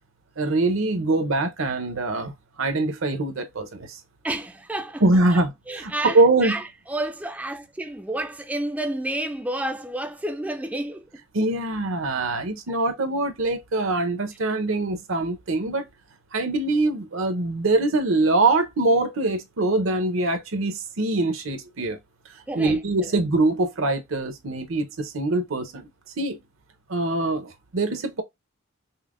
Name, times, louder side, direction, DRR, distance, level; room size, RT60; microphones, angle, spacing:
voice 1, 0.4-2.3 2.6-4.0 5.0-6.6 11.3-15.8 16.3-22.0 22.5-25.9 26.2-26.4 26.9-28.2, right 2 dB, 75° right, 0.7 m, -23 dB
voice 2, 4.2-5.0 5.3-5.4 5.7-11.0 12.7-12.8 22.5-23.1, right 1 dB, 5° right, 0.3 m, -30 dB
5.4 x 2.1 x 2.4 m
head